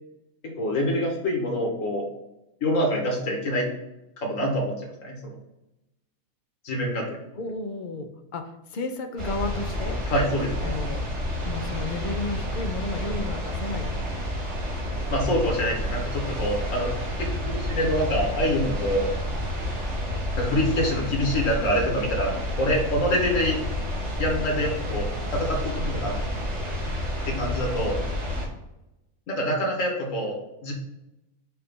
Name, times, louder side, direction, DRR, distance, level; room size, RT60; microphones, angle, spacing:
voice 1, 0.4-2.1 2.6-3.7 4.2-5.3 6.6-7.2 10.1-10.7 15.1-16.9 17.2-19.1 20.4-23.6 24.2-26.1 27.2-28.0 29.3-30.3 30.6-30.7, equal, 65° left, -1 dB, 1.9 m, -26 dB
voice 2, 7.3-10.0 10.6-11.0 11.4-13.9, left 3 dB, 45° left, 6 dB, 0.7 m, -33 dB
sound 1, 9.2-28.5, left 1 dB, 50° right, 2.2 m, -30 dB
6.7 x 2.7 x 5.3 m, 0.93 s
omnidirectional pair, 1.4 m